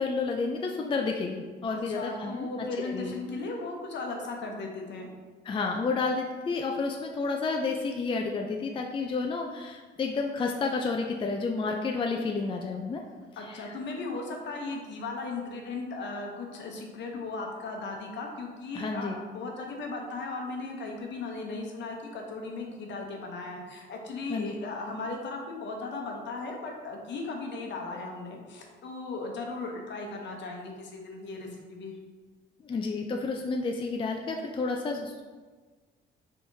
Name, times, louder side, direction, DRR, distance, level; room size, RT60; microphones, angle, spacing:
voice 1, 0.0-2.5 2.8-3.1 5.5-13.0 13.5-13.7 18.7-19.1 24.3-24.5 32.6-35.2, left 4 dB, 25° left, 2 dB, 0.4 m, -30 dB
voice 2, 1.7-5.1 13.4-31.9, left 3 dB, 65° left, 1 dB, 0.8 m, -37 dB
4.5 x 3.5 x 2.7 m, 1.4 s
cardioid pair, 90°, 20 cm